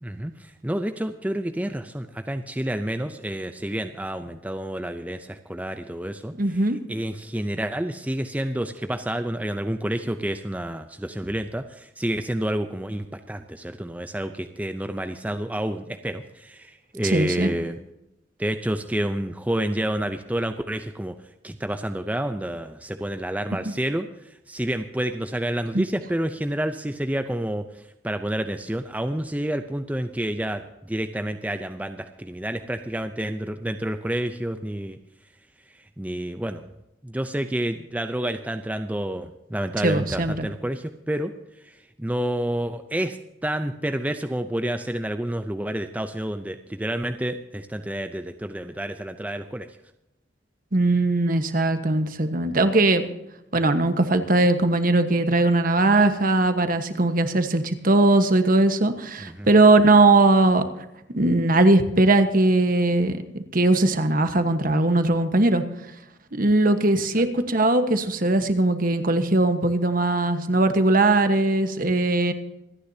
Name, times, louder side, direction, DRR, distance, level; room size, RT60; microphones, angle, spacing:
voice 1, 0.0-17.8 18.4-21.1 21.4-35.0 35.7-36.6 37.0-41.3 41.6-43.2 43.4-49.7 59.3-59.5 67.1-67.3, right 1 dB, 10° right, 7 dB, 0.6 m, -29 dB
voice 2, 6.4-6.8 17.0-17.5 25.7-25.8 39.8-40.5 50.7-53.0 53.5-60.6 61.1-63.2 63.5-65.6 66.3-72.3, right 2 dB, 50° right, 8 dB, 1.3 m, -20 dB
26.0 x 10.0 x 2.8 m, 0.89 s
head